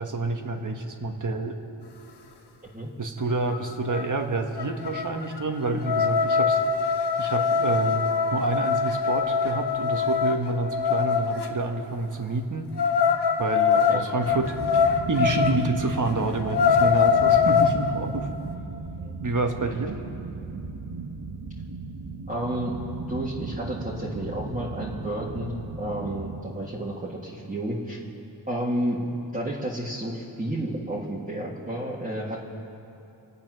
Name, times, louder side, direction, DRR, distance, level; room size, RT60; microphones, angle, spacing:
voice 1, 0.0-1.6 3.0-6.6 7.2-12.7 13.4-18.3 19.2-20.0, right 3 dB, 45° right, 4 dB, 1.3 m, -28 dB
sound 1, 3.5-3.6 3.9-4.2 4.6-11.5 12.8-15.6 16.0-16.1 16.4-17.8, left 6 dB, 70° left, 1.1 m, -23 dB
sound 2, 14.2-26.4, right 3 dB, 85° right, 1.1 m, -36 dB
voice 2, 22.3-22.7 23.1-28.0 28.5-29.0 29.3-32.4, right 1 dB, 20° right, -7 dB, 1.7 m, -31 dB
25.5 x 8.6 x 6.1 m, 2.9 s
wide cardioid pair, 85°, 41 cm